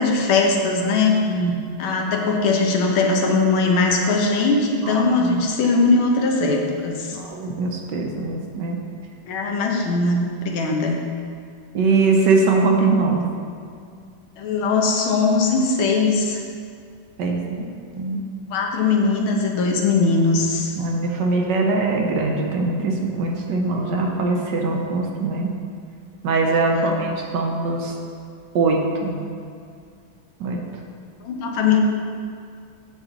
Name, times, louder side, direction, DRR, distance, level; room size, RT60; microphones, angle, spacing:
voice 1, 0.0-1.4 1.8-7.2 9.3-11.0 14.4-16.4 18.5-20.7 26.5-27.0 31.2-31.8, left 3 dB, 85° left, 1 dB, 1.8 m, -20 dB
voice 2, 4.8-5.4 7.1-8.8 11.7-13.3 17.2-17.7 17.9-18.3 20.8-25.5 26.2-27.9 28.5-29.2 30.4-30.6, right 3 dB, 65° right, 1 dB, 1.3 m, -22 dB
8.8 x 7.1 x 3.9 m, 2.3 s
omnidirectional pair, 2.2 m